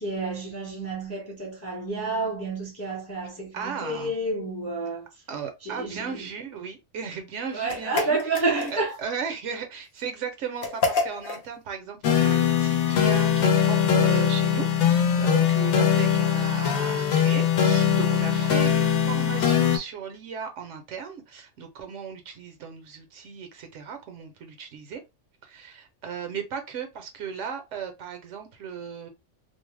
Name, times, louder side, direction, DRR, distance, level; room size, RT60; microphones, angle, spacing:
voice 1, 0.0-5.1 5.6-6.3 7.5-9.0 18.4-18.5, right 3 dB, 15° left, 0.5 m, -30 dB
voice 2, 3.5-4.1 5.3-8.2 8.7-25.0 25.4-29.1, right 6 dB, 70° right, 0.9 m, -36 dB
sound 1, 7.7-9.0 10.6-11.5, left 4 dB, 55° left, 0.7 m, -28 dB
sound 2, 12.0-19.8, left 8 dB, 80° left, 1.0 m, -21 dB
2.6 x 2.0 x 3.1 m
omnidirectional pair, 1.4 m